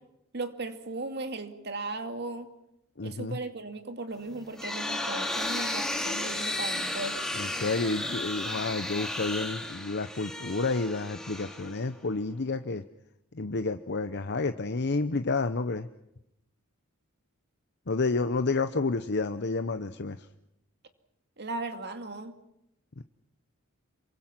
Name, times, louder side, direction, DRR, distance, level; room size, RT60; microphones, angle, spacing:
voice 1, 0.3-2.5 3.0-7.3 21.4-22.3, right 2 dB, 50° right, 8 dB, 2.3 m, -37 dB
voice 2, 3.0-3.4 7.3-12.8 13.3-15.9 17.9-20.3 23.0-23.1, left 3 dB, 55° left, 10 dB, 0.9 m, -30 dB
sound 1, 4.2-12.1, left 1 dB, ahead, 2.9 m, -34 dB
27.5 x 24.0 x 6.1 m, 0.84 s
head